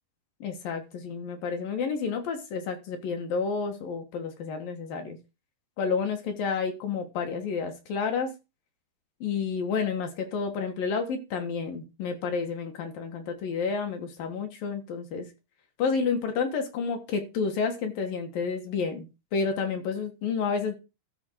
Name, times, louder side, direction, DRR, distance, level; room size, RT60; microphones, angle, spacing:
voice 1, 0.4-5.2 5.8-8.3 9.2-15.3 15.8-20.8, left 5 dB, 65° left, 5 dB, 2.9 m, -30 dB
13.0 x 4.4 x 6.1 m, 0.27 s
omnidirectional pair, 4.8 m